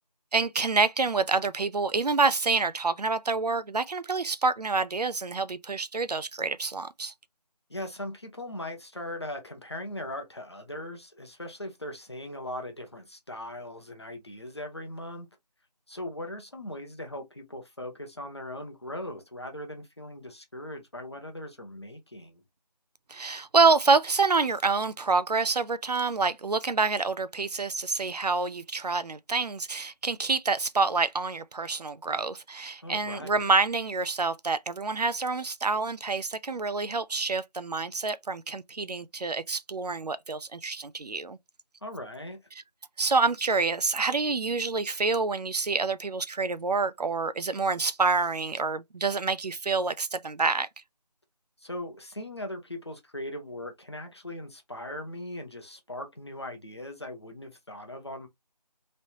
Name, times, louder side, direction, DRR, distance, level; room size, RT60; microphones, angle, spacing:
voice 1, 0.3-7.1 23.1-41.4 43.0-50.7, right 4 dB, 70° right, 0.5 m, -27 dB
voice 2, 7.7-15.3 15.9-22.4 32.8-33.5 41.8-42.4 51.6-58.3, left 1 dB, 40° left, 0.8 m, -39 dB
3.1 x 2.7 x 2.8 m
figure-of-eight pair, 175°, 21 cm